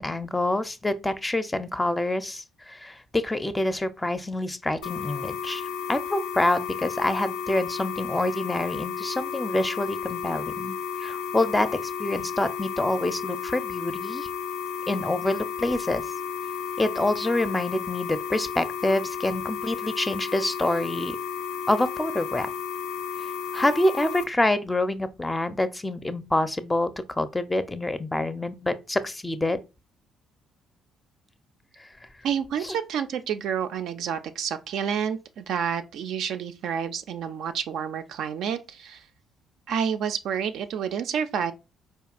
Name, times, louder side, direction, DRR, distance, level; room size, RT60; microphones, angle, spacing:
voice 1, 0.0-14.3 14.9-16.0 16.8-21.2 21.7-22.5 23.2-29.6 31.8-32.1 32.6-32.8, left 1 dB, 15° left, 0.5 m, -27 dB
sound 1, 4.8-24.2, left 7 dB, 75° left, 0.5 m, -33 dB
voice 2, 32.2-39.1 39.7-41.5, right 7 dB, 60° right, 0.4 m, -29 dB
4.4 x 2.8 x 2.4 m
figure-of-eight pair, 45°, 0 cm